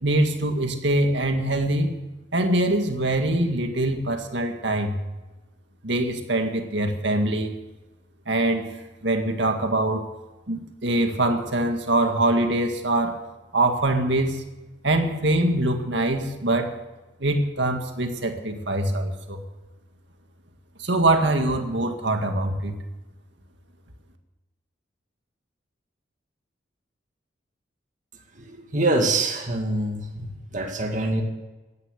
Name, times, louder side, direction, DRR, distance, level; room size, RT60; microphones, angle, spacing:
voice 1, 0.0-1.9 2.3-5.0 5.8-7.5 8.3-8.7 9.0-10.1 10.5-13.2 13.5-14.4 14.8-16.7 17.2-19.4 20.8-22.8, right 1 dB, 70° right, 5 dB, 2.0 m, -23 dB
voice 2, 28.3-31.2, right 2 dB, 40° right, 2 dB, 2.1 m, -25 dB
16.0 x 10.5 x 6.6 m, 1.1 s
head